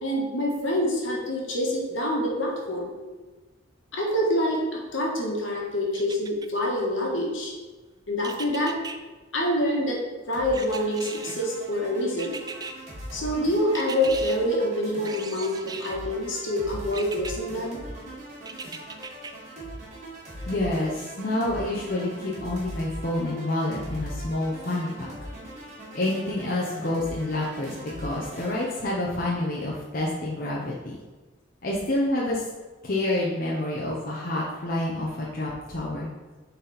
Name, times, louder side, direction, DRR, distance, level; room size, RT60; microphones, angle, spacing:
voice 1, 0.0-2.9 3.9-7.5 8.1-8.8 9.3-10.0 10.3-12.3 13.1-17.8, left 1 dB, 75° left, -2 dB, 1.7 m, -26 dB
sound 1, 5.9-6.7 8.2-9.0 10.5-11.5 12.2-12.7 13.7-14.4 15.0-16.0 16.9-17.3 18.5-19.3 19.8-19.9, right 5 dB, 20° right, 0.3 m, -38 dB
sound 2, 10.3-28.8, right 1 dB, 35° right, 1.9 m, -40 dB
voice 2, 20.5-24.9 25.9-31.0 31.6-32.4 32.8-36.1, left 1 dB, 45° left, -4 dB, 0.9 m, -28 dB
7.1 x 4.2 x 4.3 m, 1.3 s
head